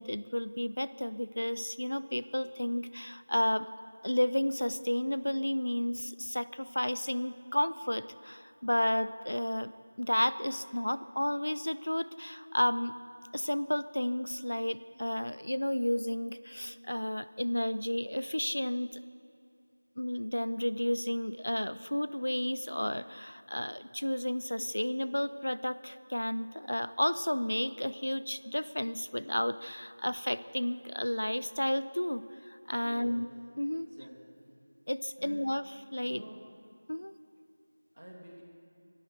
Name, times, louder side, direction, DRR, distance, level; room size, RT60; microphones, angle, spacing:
voice 1, 0.0-3.7 4.0-9.7 10.0-12.9 13.3-19.0 20.0-33.3 33.6-33.9 34.9-36.2 36.9-37.1, left 1 dB, 85° left, 15 dB, 0.6 m, -32 dB
voice 2, 32.8-33.2 33.7-34.6 35.2-35.4 36.0-36.4 37.9-38.4, right 1 dB, 85° right, -1 dB, 2.6 m, -48 dB
24.0 x 12.5 x 4.5 m, 2.6 s
figure-of-eight pair, 180°, 0 cm